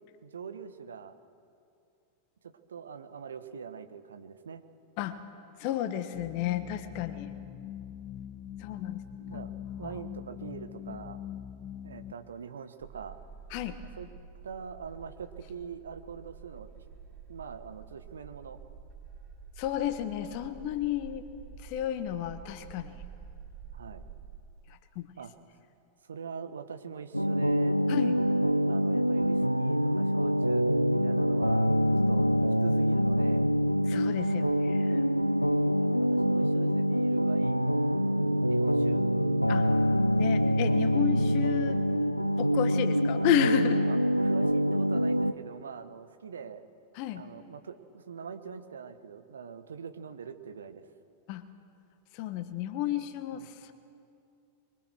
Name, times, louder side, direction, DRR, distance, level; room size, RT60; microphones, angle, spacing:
voice 1, 0.2-1.1 2.7-4.6 9.2-9.5 9.8-11.2 11.8-13.2 14.0-14.1 14.4-16.8 17.3-18.6 20.2-20.3 23.7-24.0 25.2-25.3 26.0-27.8 28.7-32.3 32.6-33.5 35.7-37.7 38.0-39.0 41.5-41.6 43.9-46.6 47.1-50.8 53.3-53.4, right 6 dB, 70° right, 9 dB, 1.3 m, -43 dB
voice 2, 5.6-7.3 8.6-9.0 9.3-9.5 9.8-10.0 13.5-13.8 19.6-21.3 21.6-23.0 24.7-25.1 27.9-28.2 33.9-35.1 39.5-39.7 40.2-41.8 42.4-43.8 46.9-47.2 51.3-51.4 52.1-53.7, left 11 dB, 45° left, 10 dB, 1.4 m, -32 dB
sound 1, 6.1-12.1, left 10 dB, 25° left, 1.0 m, -42 dB
sound 2, 12.8-24.4, right 6 dB, 30° right, 3.3 m, -48 dB
sound 3, 27.1-45.3, equal, 90° left, 0.6 m, -25 dB
24.5 x 23.0 x 6.3 m, 2.5 s
figure-of-eight pair, 90°, 0 cm